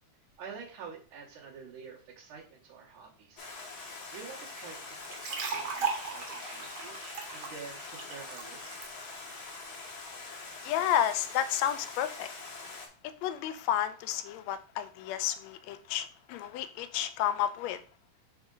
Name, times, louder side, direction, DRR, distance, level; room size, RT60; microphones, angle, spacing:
voice 1, 0.4-3.5 3.8-8.7, right 6 dB, 85° right, -5 dB, 2.7 m, -48 dB
Stream, 3.4-12.9, left 3 dB, 50° left, 1.2 m, -44 dB
sound 1, 5.0-8.9, right 5 dB, 55° right, 1.2 m, -37 dB
voice 2, 10.6-12.3 12.7-12.8 13.0-17.8, left 10 dB, 80° left, 12 dB, 1.7 m, -31 dB
7.1 x 3.6 x 3.8 m, 0.38 s
omnidirectional pair, 3.4 m